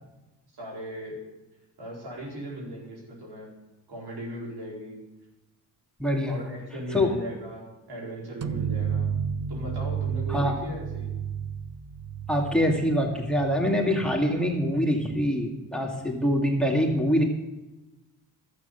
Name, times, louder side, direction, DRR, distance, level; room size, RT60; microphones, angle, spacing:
voice 1, 0.5-1.2 1.8-3.5 3.9-5.0 6.2-9.1 9.5-11.1, equal, 75° right, -3 dB, 4.6 m, -37 dB
voice 2, 6.0-6.3 6.9-7.1 10.3-10.5 12.3-17.2, equal, ahead, 1 dB, 2.3 m, -24 dB
sound 1, 8.4-13.9, right 7 dB, 40° right, 0.6 m, -32 dB
12.0 x 8.5 x 6.8 m, 1.1 s
cardioid pair, 60°, 39 cm